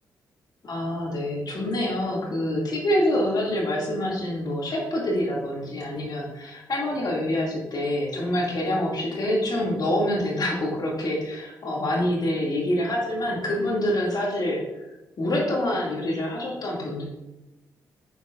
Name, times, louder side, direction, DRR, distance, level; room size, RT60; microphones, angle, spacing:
voice 1, 0.6-14.9 15.2-17.0, left 1 dB, 50° left, -3 dB, 2.5 m, -26 dB
8.6 x 7.0 x 2.6 m, 1.0 s
hypercardioid pair, 45°, 8 cm